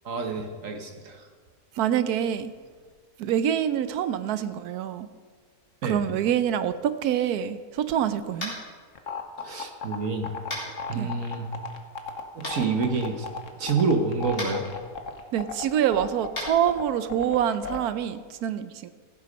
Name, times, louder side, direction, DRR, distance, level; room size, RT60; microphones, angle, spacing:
voice 1, 0.0-1.2 5.8-6.0 9.4-10.3 10.9-11.5 12.3-13.3 13.6-14.6, right 4 dB, 60° right, 4 dB, 1.6 m, -27 dB
voice 2, 1.7-2.5 3.2-5.1 5.8-8.5 10.9-11.1 15.3-18.9, right 10 dB, 85° right, 12 dB, 1.1 m, -26 dB
Tap, 8.4-8.6 10.5-10.7 12.4-12.5 14.3-14.5 16.3-16.5, left 1 dB, 35° left, 3.3 m, -32 dB
sound 1, 8.9-17.8, left 5 dB, 60° left, 1.4 m, -35 dB
15.0 x 8.2 x 5.3 m, 1.5 s
omnidirectional pair, 1.6 m